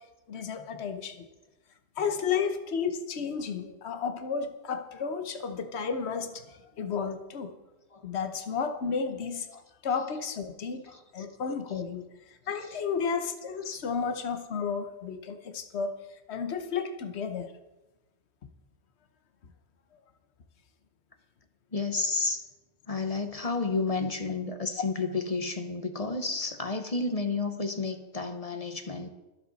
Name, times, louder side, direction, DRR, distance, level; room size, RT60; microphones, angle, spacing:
voice 1, 0.3-1.2 2.0-6.4 6.8-7.5 8.0-9.6 9.8-10.9 11.1-12.0 12.3-15.9 16.3-17.5, left 6 dB, 70° left, 8 dB, 1.2 m, -32 dB
voice 2, 21.7-22.4 22.9-29.1, left 3 dB, 35° left, 7 dB, 1.0 m, -31 dB
22.5 x 7.8 x 4.1 m, 1.1 s
omnidirectional pair, 1.2 m